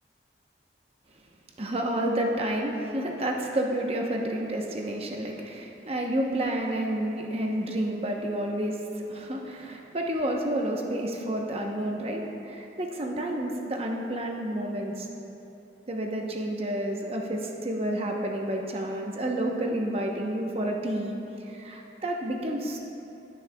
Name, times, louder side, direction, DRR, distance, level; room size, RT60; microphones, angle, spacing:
voice 1, 1.6-15.1 15.9-21.2 21.5-22.8, right 1 dB, 35° right, 1 dB, 0.8 m, -30 dB
17.0 x 6.3 x 2.2 m, 2.8 s
head